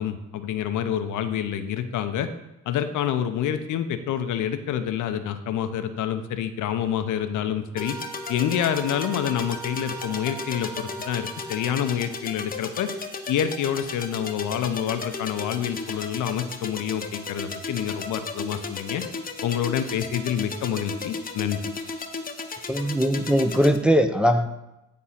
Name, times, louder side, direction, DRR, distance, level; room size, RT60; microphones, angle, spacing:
voice 1, 0.0-2.3 2.7-8.0 8.3-12.9 13.3-19.0 19.4-21.7, left 9 dB, 80° left, 9 dB, 0.7 m, -27 dB
Wind instrument woodwind instrument, 7.7-12.1, right 4 dB, 80° right, 1.2 m, -40 dB
sound 1, 7.8-23.8, left 4 dB, 30° left, 0.9 m, -35 dB
voice 2, 22.7-24.5, equal, 5° right, 6 dB, 0.6 m, -20 dB
9.7 x 3.7 x 5.7 m, 0.92 s
cardioid pair, 90°, 30 cm